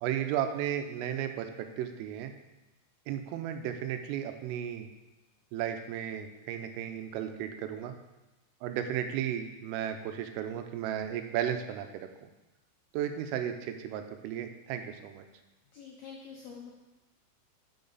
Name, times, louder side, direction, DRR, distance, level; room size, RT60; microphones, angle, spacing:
voice 1, 0.0-2.3 3.1-4.9 5.5-7.9 8.6-12.1 12.9-15.2, right 10 dB, 85° right, 7 dB, 3.3 m, -34 dB
voice 2, 15.7-16.7, left 6 dB, 80° left, -3 dB, 2.2 m, -46 dB
11.0 x 5.9 x 4.0 m, 1.0 s
omnidirectional pair, 5.8 m